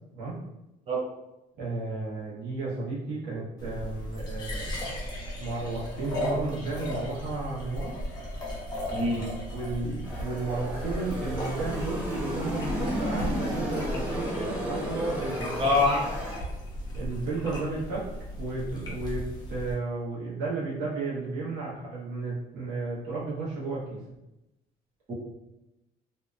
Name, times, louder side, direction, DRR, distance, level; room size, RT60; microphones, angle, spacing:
voice 1, 1.6-4.9 5.4-8.0 8.9-9.0 9.5-15.8 16.9-18.1 18.4-24.0, right 3 dB, 90° right, -7 dB, 1.1 m, -33 dB
sound 1, 3.6-19.7, equal, 25° left, 0.8 m, -36 dB
voice 2, 8.9-9.3 15.6-16.0 25.1-25.2, left 2 dB, 35° right, -4 dB, 0.7 m, -24 dB
sound 2, 10.0-16.4, equal, 10° right, 1.0 m, -33 dB
2.8 x 2.1 x 2.4 m, 0.93 s
cardioid pair, 110°, 17 cm